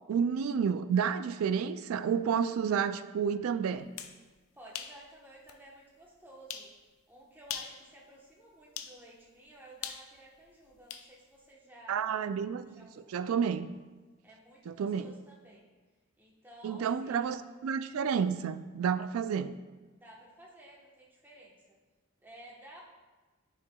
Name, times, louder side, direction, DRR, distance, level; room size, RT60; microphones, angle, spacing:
voice 1, 0.1-3.9 11.9-13.7 14.7-15.1 16.6-19.5, right 7 dB, 90° right, 13 dB, 0.3 m, -30 dB
sound 1, 3.8-4.2 4.7-5.0 5.5-5.6 6.5-6.7 7.4-7.8 8.8-9.0 9.8-11.1, left 9 dB, 85° left, 0.5 m, -40 dB
voice 2, 4.5-6.7 7.1-12.0 12.6-13.2 14.2-15.7 16.2-17.3 19.9-21.8 22.2-22.8, right 1 dB, 10° right, -4 dB, 1.0 m, -54 dB
9.5 x 4.8 x 2.3 m, 1.3 s
head